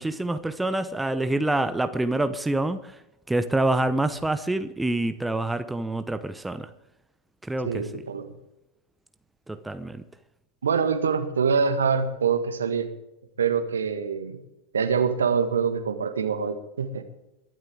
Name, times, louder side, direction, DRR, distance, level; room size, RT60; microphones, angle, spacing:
voice 1, 0.0-2.9 3.3-6.7 7.4-8.0 9.5-10.0, right 2 dB, 5° right, 0.8 m, -26 dB
voice 2, 7.6-8.3 10.6-12.9 13.4-14.4 14.7-17.0, right 6 dB, 70° right, 1.7 m, -25 dB
22.5 x 12.5 x 3.7 m
figure-of-eight pair, 90°, 0 cm